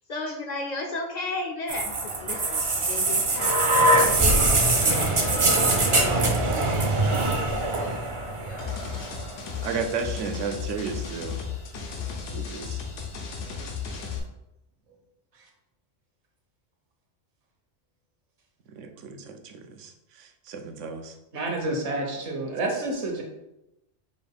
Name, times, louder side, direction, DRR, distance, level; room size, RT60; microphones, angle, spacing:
voice 1, 0.1-5.1 7.7-8.1 8.4-8.8, left 2 dB, 60° left, 2 dB, 0.4 m, -35 dB
sound 1, 1.7-9.6 10.6-10.7, right 2 dB, 45° right, 0.4 m, -23 dB
voice 2, 5.5-6.6 9.6-11.4 12.3-12.8 18.7-21.2, right 5 dB, 90° right, 6 dB, 0.9 m, -34 dB
voice 3, 7.0-7.7 21.3-23.2, right 2 dB, 70° right, 1 dB, 1.2 m, -30 dB
sound 2, 8.6-14.2, left 6 dB, 85° left, 1.0 m, -35 dB
5.1 x 2.3 x 3.5 m, 0.88 s
omnidirectional pair, 1.2 m